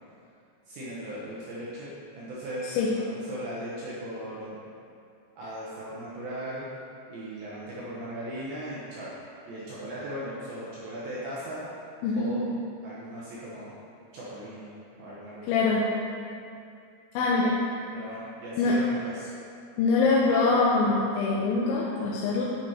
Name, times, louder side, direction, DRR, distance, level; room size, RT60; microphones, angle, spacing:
voice 1, 0.7-2.7 2.9-4.6 5.4-6.7 7.1-9.1 9.5-11.6 12.2-12.5 12.8-13.7 14.1-14.7 15.0-15.6 17.9-19.3, right 1 dB, 70° right, -8 dB, 2.3 m, -38 dB
voice 2, 12.0-12.3 15.5-15.8 17.1-17.6 18.6-18.7 19.8-22.4, left 3 dB, 80° left, -5 dB, 3.0 m, -23 dB
10.5 x 5.3 x 4.4 m, 2.5 s
omnidirectional pair, 5.7 m